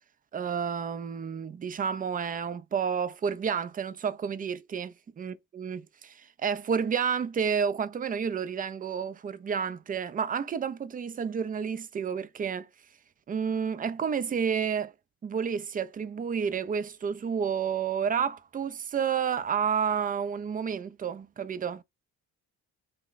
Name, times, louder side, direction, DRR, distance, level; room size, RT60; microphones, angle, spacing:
voice 1, 0.3-4.9 5.2-12.7 13.3-14.9 15.2-21.8, right 7 dB, 20° right, 0.3 m, -30 dB
2.9 x 2.1 x 3.9 m
hypercardioid pair, 50°, 42 cm